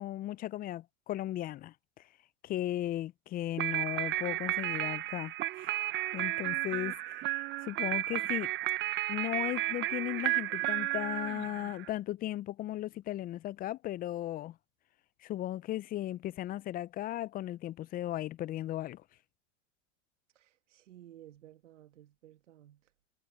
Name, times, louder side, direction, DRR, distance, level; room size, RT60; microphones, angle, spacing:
voice 1, 0.0-1.7 2.4-5.7 6.1-8.5 9.1-14.6 15.2-19.0, left 14 dB, 25° left, 0.4 m, -36 dB
sound 1, 3.6-11.9, right 16 dB, 30° right, 0.7 m, -33 dB
voice 2, 20.3-22.8, right 12 dB, 85° right, 1.6 m, -55 dB
hypercardioid pair, 110°, 36 cm